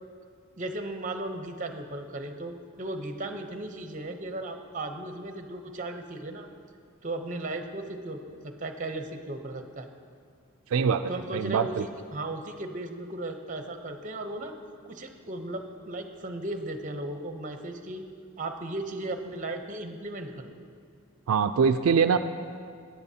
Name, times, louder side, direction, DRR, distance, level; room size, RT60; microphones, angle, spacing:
voice 1, 0.6-6.5 7.0-9.9 11.1-14.5 14.9-18.0 18.4-20.5, right 2 dB, 40° right, 6 dB, 0.8 m, -36 dB
voice 2, 10.7-11.9 21.3-22.2, right 6 dB, 85° right, 8 dB, 0.3 m, -23 dB
17.5 x 10.5 x 2.8 m, 2.2 s
head